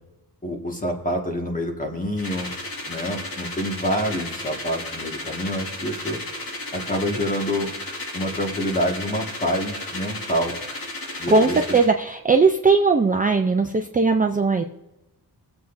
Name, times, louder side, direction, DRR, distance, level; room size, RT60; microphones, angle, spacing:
voice 1, 0.4-2.5 2.9-6.2 6.7-7.7 8.1-10.6 11.2-11.8, equal, 20° left, 1 dB, 1.7 m, -27 dB
sound 1, 2.2-11.9, left 2 dB, 60° left, 2.3 m, -34 dB
voice 2, 11.3-14.6, right 4 dB, 20° right, 4 dB, 0.5 m, -19 dB
22.5 x 7.9 x 2.6 m, 0.98 s
wide cardioid pair, 165°, 39 cm